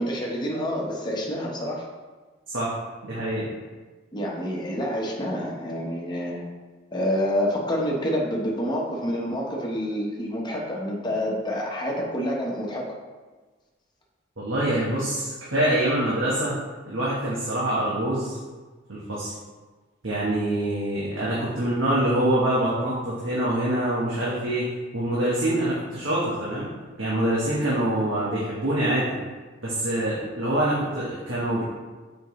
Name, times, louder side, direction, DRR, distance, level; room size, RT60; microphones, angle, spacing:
voice 1, 0.0-1.8 4.1-6.4 6.9-12.9, equal, 20° left, -2 dB, 1.1 m, -28 dB
voice 2, 3.0-3.5 14.4-16.6 16.9-18.4 18.9-19.3 20.0-26.7 27.0-29.1 29.6-31.6, right 1 dB, 75° right, -7 dB, 1.4 m, -25 dB
7.1 x 5.2 x 3.2 m, 1.3 s
head